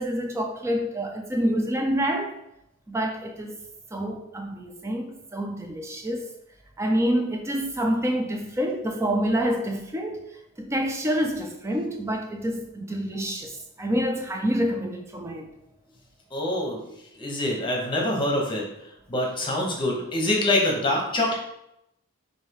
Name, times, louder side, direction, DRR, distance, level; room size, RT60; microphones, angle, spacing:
voice 1, 0.0-2.4 2.9-3.6 3.9-6.3 6.8-10.3 10.6-15.5, equal, 15° right, 0.4 m, -27 dB
voice 2, 16.3-16.8 17.2-18.6 19.1-21.3, left 1 dB, 25° left, 0.9 m, -25 dB
3.2 x 2.7 x 4.5 m
head